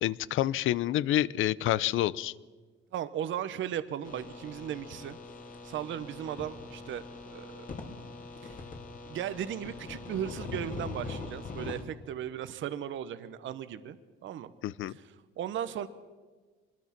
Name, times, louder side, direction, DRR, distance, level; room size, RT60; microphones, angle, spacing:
voice 1, 0.0-2.3 14.6-14.9, left 13 dB, 70° left, 20 dB, 0.7 m, -28 dB
voice 2, 2.9-5.2 5.6-7.7 8.4-8.6 9.0-14.0 14.2-14.5 14.9-15.0 15.4-15.9, right 10 dB, 65° right, 13 dB, 1.1 m, -36 dB
sound 1, 4.0-11.8, left 3 dB, 40° left, 3.0 m, -42 dB
24.5 x 21.0 x 6.0 m, 1.4 s
cardioid pair, 105°, 21 cm